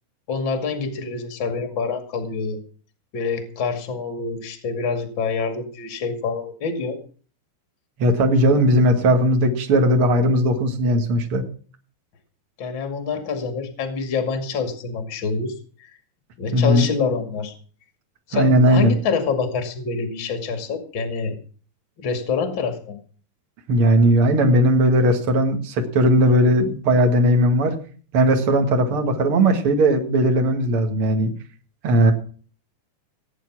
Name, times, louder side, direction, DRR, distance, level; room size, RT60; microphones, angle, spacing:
voice 1, 0.3-2.6 3.1-7.0 12.6-15.5 15.8-15.9 16.4-17.5 18.3-21.3 22.0-23.0, left 5 dB, 65° left, 7 dB, 1.1 m, -26 dB
voice 2, 8.0-11.4 16.5-16.9 18.3-18.9 23.7-27.7 28.1-31.3 31.8-32.1, right 1 dB, 75° right, 3 dB, 1.2 m, -17 dB
18.0 x 9.2 x 6.2 m, 0.42 s
omnidirectional pair, 6.0 m